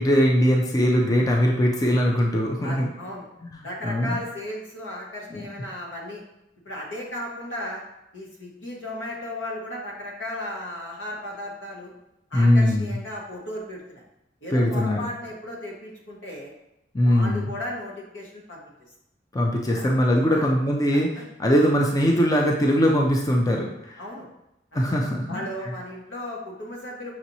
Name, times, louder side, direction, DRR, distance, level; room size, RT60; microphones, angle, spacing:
voice 1, 0.0-2.9 3.5-4.2 5.3-5.4 12.3-12.9 14.5-15.0 16.9-17.5 19.3-21.1 21.4-23.7 24.7-25.5, equal, 20° left, 0 dB, 0.4 m, -21 dB
voice 2, 2.6-3.3 3.6-6.2 6.6-7.8 8.1-11.9 12.3-14.0 14.4-16.5 17.0-18.7 19.7-19.9 20.3-20.5 20.9-21.2 24.0-24.3 24.7-24.8 25.3-27.1, left 1 dB, 85° left, -3 dB, 1.2 m, -35 dB
5.9 x 2.9 x 2.7 m, 0.85 s
head